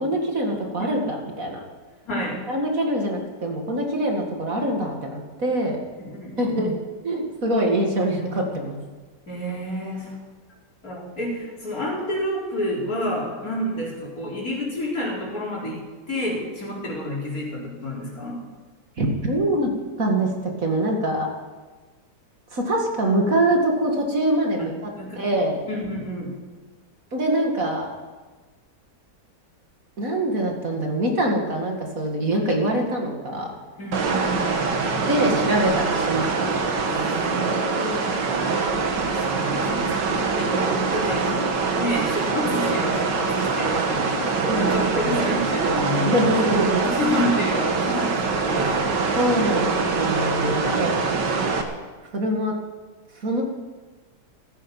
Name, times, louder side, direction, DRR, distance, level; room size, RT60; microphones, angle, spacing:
voice 1, 0.0-1.6 2.5-5.8 6.4-6.8 7.0-8.8 19.0-19.7 20.0-21.3 22.5-25.6 27.1-27.9 30.0-33.5 35.0-37.1 37.5-37.6 44.4-45.2 45.9-46.9 49.2-51.2 52.1-52.5 53.2-53.4, right 1 dB, 50° right, 1 dB, 2.4 m, -24 dB
voice 2, 2.0-2.4 6.1-6.7 9.3-10.2 10.8-18.4 25.0-25.2 25.6-26.3 33.8-35.4 36.9-38.1 39.0-41.3 41.7-46.1 46.9-49.0, left 1 dB, 55° left, -4 dB, 4.8 m, -29 dB
sound 1, 33.9-51.6, right 4 dB, 80° right, 2.1 m, -24 dB
15.5 x 15.0 x 5.5 m, 1.3 s
omnidirectional pair, 1.9 m